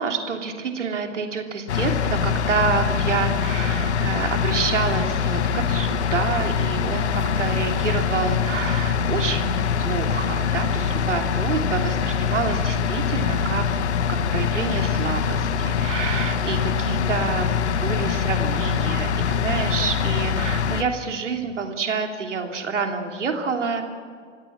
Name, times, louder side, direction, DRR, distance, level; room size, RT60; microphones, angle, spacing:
voice 1, 0.0-13.6 14.1-23.9, right 5 dB, 70° right, 3 dB, 3.1 m, -28 dB
sound 1, 1.7-20.8, left 7 dB, 60° left, 1.3 m, -23 dB
29.0 x 17.5 x 5.9 m, 2.1 s
figure-of-eight pair, 100°, 38 cm